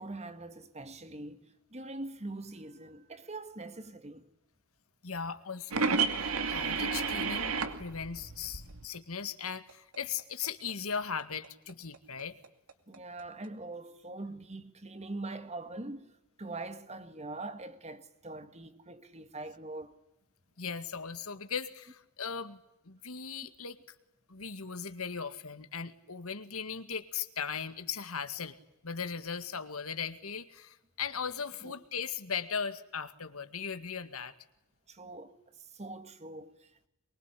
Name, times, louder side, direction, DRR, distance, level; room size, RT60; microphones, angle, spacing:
voice 1, 0.0-4.3 12.9-19.9 31.6-31.7 34.9-36.9, right 2 dB, 30° right, 1.9 m, -43 dB
voice 2, 5.0-7.5 7.8-12.4 20.6-24.0 24.3-28.6 28.8-34.4, left 6 dB, 75° left, 2.0 m, -38 dB
sound 1, 5.7-8.8 9.2-13.5, right 4 dB, 80° right, 2.5 m, -32 dB
23.5 x 23.5 x 10.0 m
head